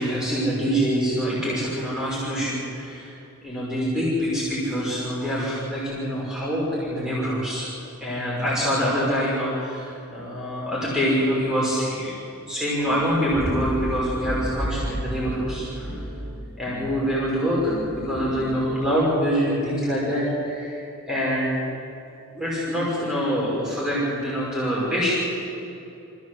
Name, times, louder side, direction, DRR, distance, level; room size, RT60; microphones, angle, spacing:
voice 1, 0.0-3.1 3.4-7.7 8.0-15.9 16.6-21.6 22.3-25.1, equal, 5° right, -8 dB, 5.9 m, -25 dB
sound 1, 12.8-19.0, equal, 20° right, 4.3 m, -33 dB
26.0 x 16.0 x 7.9 m, 2.8 s
head